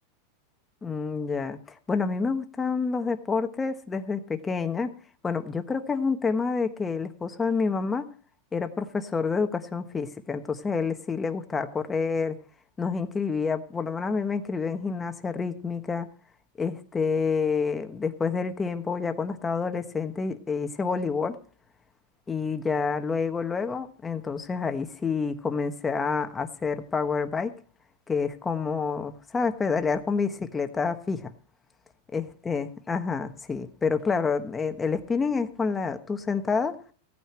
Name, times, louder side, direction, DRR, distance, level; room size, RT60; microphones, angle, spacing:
voice 1, 0.8-1.6 1.9-4.9 5.2-8.1 8.5-12.4 12.8-16.1 16.6-21.4 22.3-27.5 28.1-31.3 32.1-36.8, left 5 dB, 15° left, 8 dB, 1.3 m, -28 dB
16.0 x 9.3 x 4.5 m, 0.43 s
supercardioid pair, 135°, 0 cm